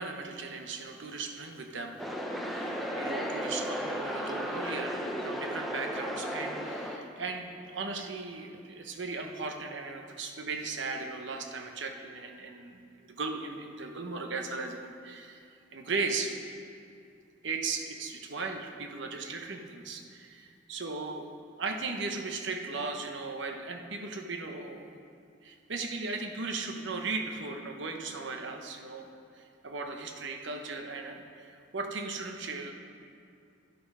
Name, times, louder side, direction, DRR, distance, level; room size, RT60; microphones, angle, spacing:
voice 1, 0.0-2.1 2.5-16.3 17.4-21.3 21.6-24.9 25.4-29.1 29.3-32.7, right 3 dB, 70° right, 4 dB, 0.9 m, -37 dB
sound 1, 2.0-7.0, equal, ahead, 0.7 m, -34 dB
11.0 x 8.0 x 5.5 m, 2.5 s
head